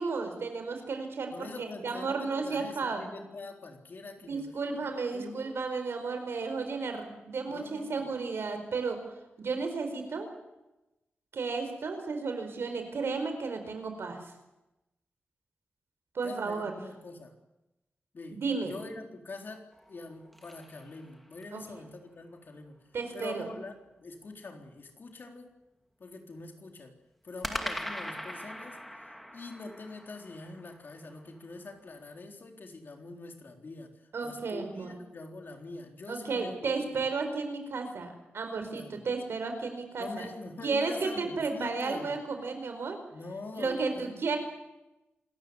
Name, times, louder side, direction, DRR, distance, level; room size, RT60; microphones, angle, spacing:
voice 1, 0.0-3.0 4.3-9.0 9.4-10.3 11.3-14.2 16.1-16.7 18.3-18.7 21.5-21.6 22.9-23.5 34.1-35.0 36.1-40.3 40.6-43.0 43.5-44.4, right 4 dB, 80° right, 6 dB, 4.8 m, -33 dB
voice 2, 1.3-4.5 4.9-5.6 7.5-8.1 16.2-17.4 18.1-22.8 23.1-25.6 26.0-26.9 27.2-28.8 29.3-37.0 38.7-39.1 40.0-42.1 43.1-44.2, left 3 dB, 55° left, 3 dB, 3.7 m, -44 dB
sound 1, 19.7-21.6 27.4-31.7, equal, 5° left, 2.4 m, -41 dB
26.5 x 14.5 x 9.7 m, 0.98 s
wide cardioid pair, 105°, 4 cm